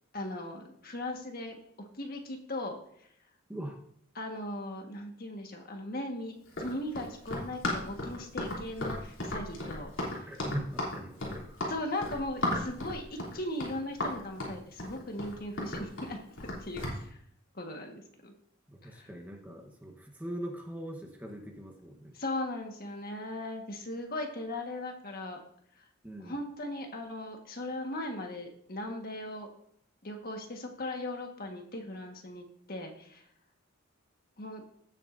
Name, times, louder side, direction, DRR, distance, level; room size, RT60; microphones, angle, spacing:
voice 1, 0.1-1.6 2.0-2.8 4.1-10.3 11.7-17.2 17.5-18.3 18.8-19.1 22.1-25.4 26.2-29.5 30.0-33.2 34.4-34.6, left 1 dB, 45° left, 3 dB, 1.5 m, -38 dB
Run, 6.5-17.0, left 1 dB, 75° left, 3.1 m, -35 dB
voice 2, 10.2-11.5 18.7-22.2 26.0-26.4, right 1 dB, 10° right, 2 dB, 1.1 m, -41 dB
16.5 x 7.3 x 2.6 m, 0.68 s
head